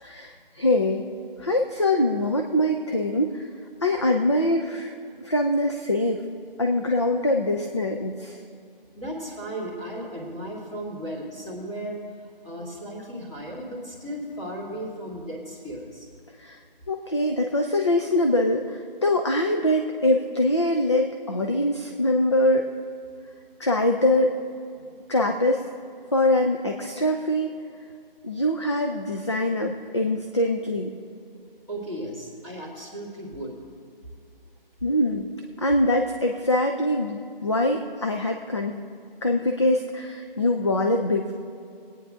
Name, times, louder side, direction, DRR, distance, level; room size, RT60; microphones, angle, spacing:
voice 1, 0.0-1.0 1.4-3.5 3.8-4.9 5.2-6.2 6.6-8.4 16.4-16.6 16.9-22.7 23.6-24.4 25.1-25.7 26.1-27.5 28.2-30.9 34.8-35.3 35.6-38.8 39.2-41.3, left 1 dB, 30° left, 3 dB, 0.4 m, -23 dB
voice 2, 8.9-12.0 12.4-16.1 24.8-24.9 31.7-33.6, right 1 dB, 10° left, -8 dB, 2.2 m, -35 dB
20.0 x 9.2 x 3.7 m, 2.4 s
figure-of-eight pair, 160°, 29 cm